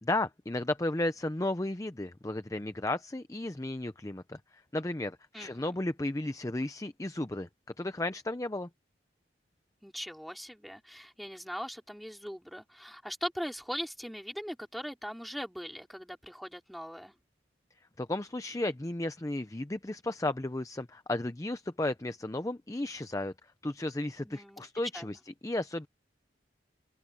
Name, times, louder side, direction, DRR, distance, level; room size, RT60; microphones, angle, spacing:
voice 1, 0.0-7.5 7.8-8.7 18.0-23.3 23.6-25.9, left 1 dB, 20° left, 0.6 m, -34 dB
voice 2, 5.3-5.7 9.8-17.1 24.2-24.6 24.9-25.2, equal, ahead, 3.9 m, -40 dB
head